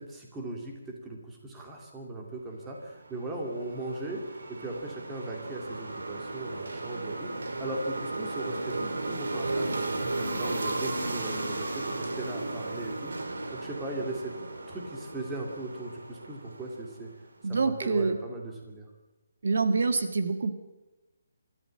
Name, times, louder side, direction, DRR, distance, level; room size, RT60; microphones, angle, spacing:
voice 1, 0.0-4.2 4.5-9.8 10.2-14.3 14.7-17.1 17.5-18.9, right 2 dB, 5° right, 0 dB, 2.4 m, -38 dB
sound 1, 2.8-17.2, right 2 dB, 80° right, 3.9 m, -35 dB
voice 2, 17.4-18.2 19.4-20.5, right 4 dB, 55° right, 8 dB, 1.7 m, -26 dB
24.5 x 13.5 x 8.7 m, 1.1 s
hypercardioid pair, 175°, 0 cm